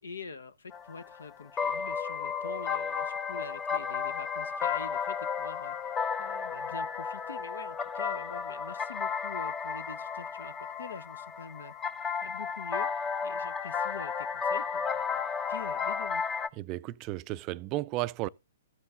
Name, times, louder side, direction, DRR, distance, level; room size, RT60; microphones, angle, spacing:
voice 1, 0.0-11.7 12.2-15.2 15.5-16.2, left 5 dB, 75° left, 1.1 m, -45 dB
sound 1, 0.7-16.5, left 6 dB, 20° left, 0.7 m, -33 dB
voice 2, 16.6-18.3, right 17 dB, 35° right, 0.4 m, -34 dB
13.5 x 7.6 x 3.9 m
figure-of-eight pair, 115°, 0 cm